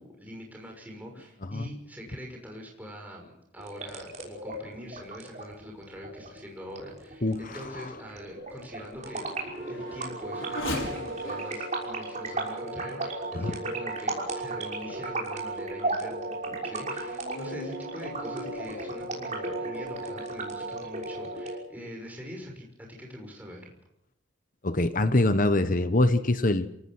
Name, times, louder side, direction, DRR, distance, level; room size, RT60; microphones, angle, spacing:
voice 1, 0.0-9.3 9.7-23.7, equal, 10° right, 0 dB, 6.0 m, -43 dB
sound 1, 3.6-21.6, right 2 dB, 35° right, 6.1 m, -35 dB
Race car auto racing / Accelerating revving vroom, 6.4-14.3 14.9-15.0 15.6-20.4, left 2 dB, 70° left, 5.5 m, -43 dB
voice 2, 7.2-7.8 13.3-13.5 24.6-26.7, left 2 dB, 40° left, 11 dB, 1.0 m, -24 dB
28.0 x 18.5 x 6.3 m, 0.80 s
head